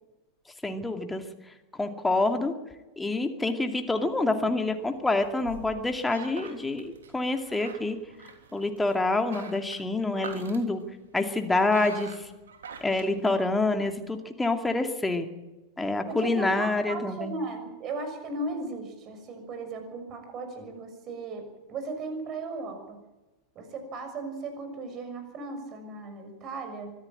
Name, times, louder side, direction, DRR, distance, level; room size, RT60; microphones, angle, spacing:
voice 1, 0.6-1.2 1.8-2.5 3.0-8.0 8.5-10.8 11.1-12.3 12.8-15.3 15.8-17.3, left 2 dB, 10° left, 6 dB, 2.4 m, -27 dB
sound 1, 3.6-13.9, right 5 dB, 65° right, 3.3 m, -46 dB
voice 2, 16.1-23.0 23.5-26.9, right 3 dB, 30° right, 7 dB, 6.4 m, -36 dB
24.5 x 15.0 x 8.9 m, 1.1 s
figure-of-eight pair, 90°, 0 cm